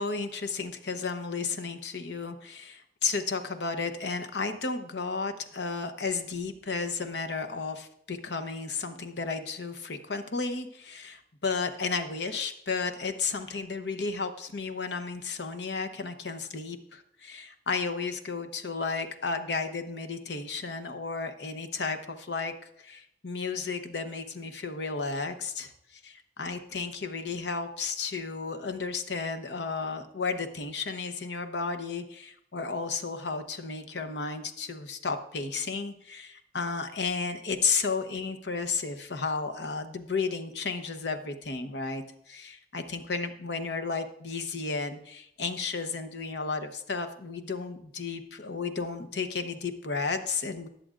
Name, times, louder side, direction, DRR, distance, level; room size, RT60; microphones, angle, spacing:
voice 1, 0.0-50.7, left 4 dB, 75° left, 7 dB, 0.9 m, -33 dB
19.5 x 7.6 x 2.5 m, 0.72 s
head